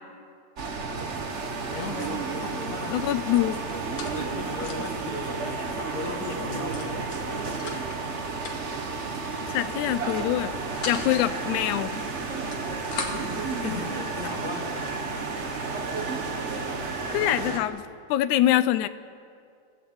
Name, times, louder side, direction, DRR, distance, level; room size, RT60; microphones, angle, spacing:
sound 1, 0.6-17.6, right 4 dB, 45° right, 0.8 m, -32 dB
sound 2, 1.3-17.5, right 2 dB, 75° right, 4.2 m, -47 dB
voice 1, 1.7-3.0 4.2-7.1 13.1-14.9, left 3 dB, 35° left, 3 dB, 2.1 m, -37 dB
voice 2, 2.9-3.6 9.4-10.5 10.9-11.9 17.1-17.8 18.1-18.9, left 13 dB, 90° left, 13 dB, 2.1 m, -24 dB
sound 3, 3.2-5.0 5.4-5.5 5.7-6.0 6.7-8.0 8.4-8.8 9.6-9.9 10.3-11.1 12.2-13.4 14.1-14.2 14.8-14.9 15.5-15.6 15.8-16.8, left 4 dB, 65° left, 3.2 m, -40 dB
24.5 x 15.5 x 7.9 m, 2.4 s
omnidirectional pair, 3.3 m